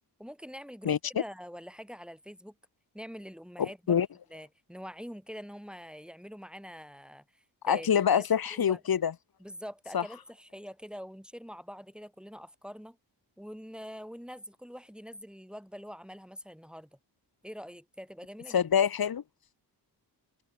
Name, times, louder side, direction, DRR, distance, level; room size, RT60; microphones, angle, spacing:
voice 1, 0.2-2.5 2.9-4.0 4.3-7.9 8.2-8.8 9.4-13.0 13.4-16.9 17.4-18.6, equal, ahead, 2.9 m, -45 dB
voice 2, 3.6-4.1 7.6-9.1 9.9-10.0 18.5-19.2, left 8 dB, 55° left, 1.4 m, -25 dB
wide cardioid pair, 100°, 42 cm